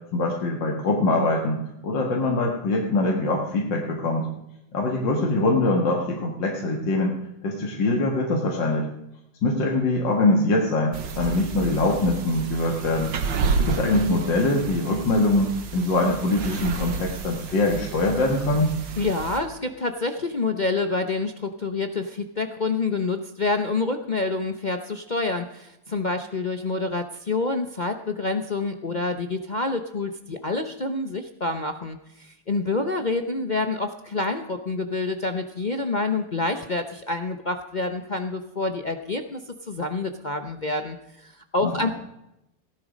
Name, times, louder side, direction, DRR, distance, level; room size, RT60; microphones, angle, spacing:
voice 1, 0.1-4.3 4.7-7.2 7.4-8.9 9.4-13.1 13.6-18.7 41.6-41.9, left 2 dB, 75° left, 0 dB, 2.4 m, -23 dB
sound 1, 10.9-19.4, right 5 dB, 85° right, 2.0 m, -31 dB
voice 2, 19.0-41.9, left 3 dB, 45° left, 6 dB, 0.6 m, -27 dB
17.0 x 11.5 x 5.2 m, 0.87 s
omnidirectional pair, 2.0 m